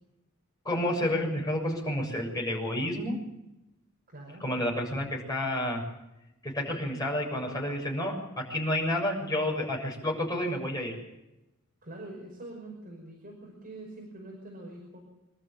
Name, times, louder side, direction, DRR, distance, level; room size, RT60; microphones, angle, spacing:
voice 1, 0.6-3.2 4.4-5.8 6.4-8.1 8.5-11.0, left 1 dB, 15° left, -2 dB, 7.2 m, -30 dB
voice 2, 4.1-4.4 11.8-15.0, right 2 dB, 40° right, -1 dB, 5.6 m, -44 dB
26.0 x 13.0 x 9.0 m, 0.91 s
head